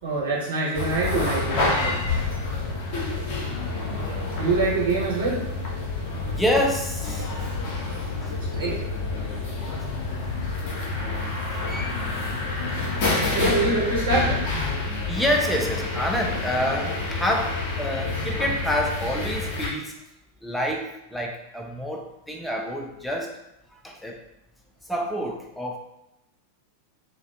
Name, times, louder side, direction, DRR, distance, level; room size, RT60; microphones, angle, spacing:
voice 1, 0.0-2.0 4.4-5.4 8.5-8.8 13.3-14.5, right 3 dB, 60° right, -6 dB, 1.0 m, -25 dB
sound 1, 0.7-19.7, left 3 dB, 45° left, 0.7 m, -28 dB
voice 2, 6.3-7.3 8.2-8.7 9.7-9.9 11.7-12.0 13.3-13.5 15.1-19.9 20.4-23.3 23.8-24.2 24.9-25.8, equal, 5° left, 1 dB, 0.4 m, -28 dB
2.4 x 2.1 x 2.5 m, 0.85 s
figure-of-eight pair, 90°, 0 cm